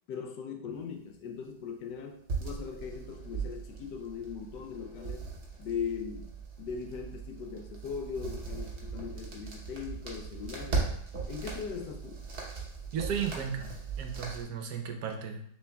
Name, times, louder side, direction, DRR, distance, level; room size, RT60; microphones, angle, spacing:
voice 1, 0.1-5.3 5.6-10.9 11.3-12.2, left 6 dB, 80° left, 4 dB, 1.2 m, -39 dB
sound 1, 2.3-14.4, right 4 dB, 45° right, 1.1 m, -38 dB
voice 2, 12.9-15.4, right 7 dB, 70° right, 4 dB, 1.2 m, -35 dB
6.2 x 3.4 x 2.2 m, 0.67 s
omnidirectional pair, 1.8 m